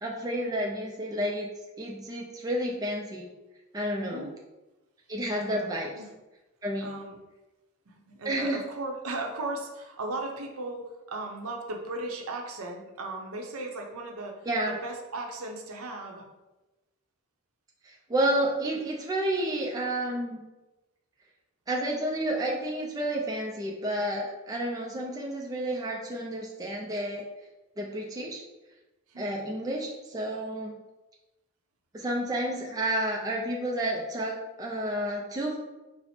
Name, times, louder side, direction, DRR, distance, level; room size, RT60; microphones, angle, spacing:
voice 1, 0.0-1.5 1.8-3.4 3.7-4.3 5.1-5.9 6.6-7.0 8.2-8.6 14.5-14.8 17.8-20.4 21.7-27.3 27.8-28.4 29.2-30.7 31.9-35.6, right 1 dB, 15° right, -1 dB, 0.4 m, -30 dB
voice 2, 3.9-4.3 5.4-6.1 6.8-7.2 7.9-14.4 14.7-16.2 29.1-29.4, right 2 dB, 70° right, 2 dB, 0.6 m, -37 dB
4.2 x 2.0 x 4.2 m, 1.1 s
head